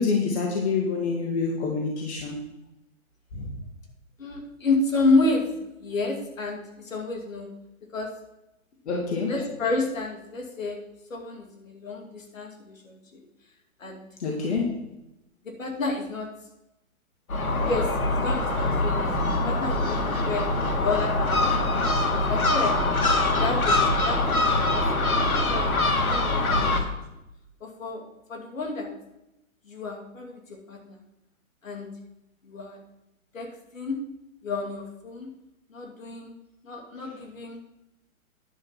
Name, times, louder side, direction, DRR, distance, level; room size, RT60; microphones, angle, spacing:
voice 1, 0.0-2.4 3.3-3.5 8.9-9.3 14.2-14.8, left 4 dB, 50° left, 0 dB, 2.0 m, -27 dB
voice 2, 4.2-5.5 5.8-7.5 7.9-8.1 9.3-10.8 11.1-13.2 13.8-14.0 15.4-16.3 17.6-20.5 20.8-21.8 22.3-22.8 23.2-25.0 25.3-27.0 27.6-28.0 28.3-28.9 29.6-31.0 31.6-31.9 32.4-32.8 33.3-34.0 34.4-35.3 35.7-36.3 36.6-37.6, left 3 dB, 70° left, 2 dB, 2.6 m, -30 dB
Gull seagull, 17.3-26.8, left 2 dB, 85° left, 1.8 m, -23 dB
10.0 x 7.6 x 4.5 m, 0.89 s
hypercardioid pair, 145°, 42 cm